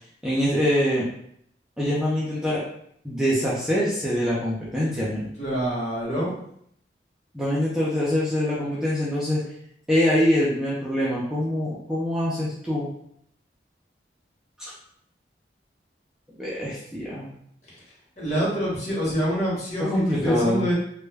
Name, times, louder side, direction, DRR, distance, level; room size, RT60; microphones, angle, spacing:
voice 1, 0.2-1.1 1.8-2.6 3.0-5.3 7.3-9.4 9.9-12.9 14.6-14.7 16.4-17.3 19.8-20.6, equal, 5° right, -8 dB, 0.4 m, -24 dB
voice 2, 5.4-6.3 18.2-20.7, equal, 40° left, -6 dB, 1.0 m, -26 dB
2.2 x 2.1 x 3.3 m, 0.69 s
head